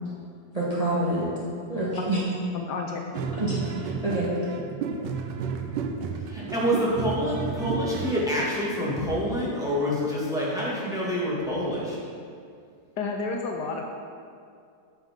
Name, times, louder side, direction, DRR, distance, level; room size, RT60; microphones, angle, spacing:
voice 1, 0.5-1.3 1.7-2.2 3.3-4.3, right 1 dB, 25° right, -7 dB, 1.3 m, -27 dB
voice 2, 2.5-3.0 13.0-13.9, left 4 dB, 70° left, 2 dB, 1.2 m, -30 dB
sound 1, 3.1-8.3, right 6 dB, 85° right, 1.3 m, -32 dB
voice 3, 6.3-12.0, equal, ahead, -7 dB, 1.7 m, -27 dB
8.9 x 7.1 x 3.7 m, 2.3 s
omnidirectional pair, 2.0 m